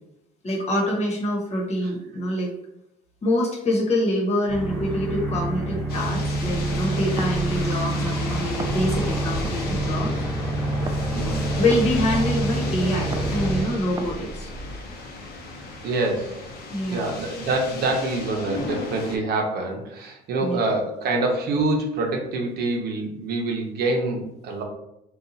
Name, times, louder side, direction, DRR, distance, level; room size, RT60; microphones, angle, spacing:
voice 1, 0.4-2.5 3.2-10.1 11.6-14.5 16.7-17.1 20.4-20.6, left 1 dB, 40° left, -2 dB, 1.1 m, -25 dB
sound 1, 4.5-13.6, right 1 dB, 15° left, 1.4 m, -27 dB
sound 2, 5.9-19.2, left 3 dB, 70° left, 0.7 m, -37 dB
sound 3, 6.3-15.3, right 2 dB, 25° right, 0.4 m, -36 dB
voice 2, 11.1-11.5 15.8-16.5 16.9-24.6, right 2 dB, 65° right, 1 dB, 0.8 m, -26 dB
2.8 x 2.4 x 3.9 m, 0.83 s
cardioid pair, 110°, 17 cm